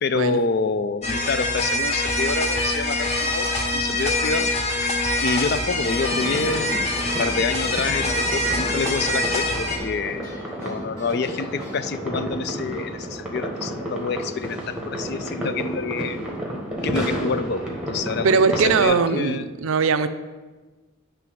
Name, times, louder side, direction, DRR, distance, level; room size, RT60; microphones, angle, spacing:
voice 1, 0.0-4.5 5.2-16.2 16.8-19.5, left 4 dB, 50° left, 11 dB, 0.4 m, -27 dB
sound 1, 1.0-9.8, left 1 dB, 30° left, 0.9 m, -24 dB
sound 2, 5.7-12.4, equal, 15° left, 1.8 m, -44 dB
sound 3, 6.1-18.8, equal, 5° right, 1.1 m, -31 dB
voice 2, 18.2-20.1, right 5 dB, 75° right, 10 dB, 0.4 m, -20 dB
9.5 x 3.4 x 6.1 m, 1.3 s
head